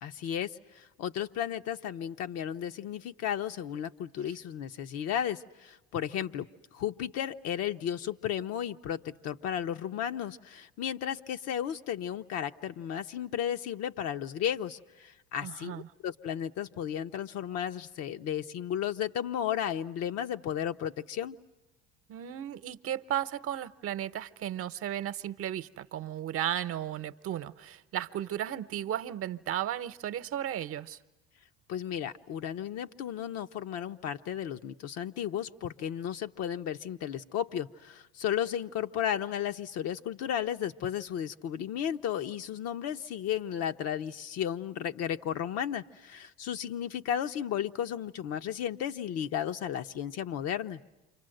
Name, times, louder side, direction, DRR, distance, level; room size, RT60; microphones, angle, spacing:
voice 1, 0.0-21.4 31.7-50.8, left 9 dB, 60° left, 1.0 m, -34 dB
voice 2, 15.4-15.9 22.1-31.0, right 11 dB, 50° right, 1.0 m, -35 dB
29.0 x 25.5 x 7.9 m
hypercardioid pair, 70°, 29 cm